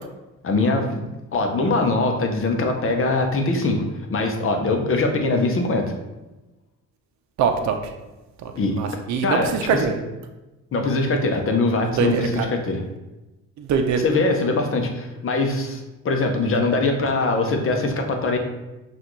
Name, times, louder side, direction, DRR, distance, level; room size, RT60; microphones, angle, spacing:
voice 1, 0.4-1.0 1.3-3.8 4.1-5.9 8.5-8.8 9.2-10.0 10.7-12.8 14.0-18.4, left 3 dB, 45° left, 4 dB, 0.8 m, -22 dB
voice 2, 7.4-7.8 8.4-9.9 12.0-12.5 13.6-14.0, right 6 dB, 65° right, 5 dB, 0.6 m, -23 dB
5.7 x 2.5 x 3.1 m, 1.1 s
cardioid pair, 90°, 30 cm